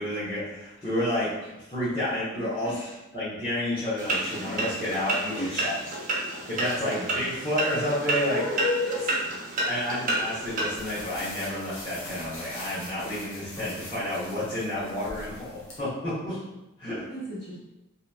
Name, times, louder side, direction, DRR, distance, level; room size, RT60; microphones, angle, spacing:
voice 1, 0.0-2.7 3.1-5.7 6.5-8.4 9.7-16.4 16.8-17.0, left 1 dB, 25° left, -12 dB, 0.7 m, -30 dB
voice 2, 2.3-3.0 5.3-5.9 8.3-9.3 15.0-15.4 17.1-17.6, left 2 dB, 50° left, -9 dB, 1.1 m, -33 dB
sound 1, 4.0-10.8, right 2 dB, 40° right, 0.5 m, -30 dB
sound 2, 10.4-15.8, left 1 dB, 70° left, 0.7 m, -43 dB
2.8 x 2.5 x 2.3 m, 0.99 s
head